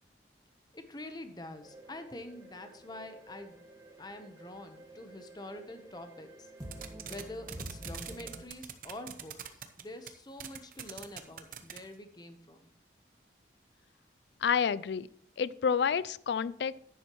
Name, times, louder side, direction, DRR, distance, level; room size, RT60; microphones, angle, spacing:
voice 1, 0.7-3.6 4.0-6.5 6.8-12.7, left 1 dB, 20° left, 8 dB, 0.9 m, -46 dB
sound 1, 1.6-8.4, right 1 dB, 20° right, 1.3 m, -49 dB
sound 2, 6.6-7.2 7.5-9.8 10.1-10.2 10.4-11.8, right 9 dB, 50° right, 0.8 m, -41 dB
voice 2, 14.4-15.1 15.4-16.7, left 7 dB, 65° left, 19 dB, 0.3 m, -29 dB
10.5 x 9.8 x 3.0 m, 0.65 s
head